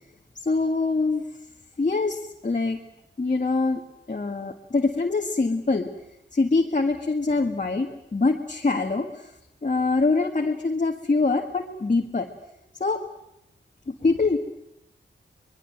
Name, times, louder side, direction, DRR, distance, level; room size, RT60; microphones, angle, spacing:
voice 1, 0.3-1.2 1.8-2.8 3.2-3.8 4.1-5.9 6.3-9.3 9.6-12.3 12.8-13.0 13.9-14.4, left 3 dB, 40° left, 1 dB, 1.8 m, -24 dB
24.5 x 22.0 x 7.9 m, 0.86 s
wide cardioid pair, 85°, 20 cm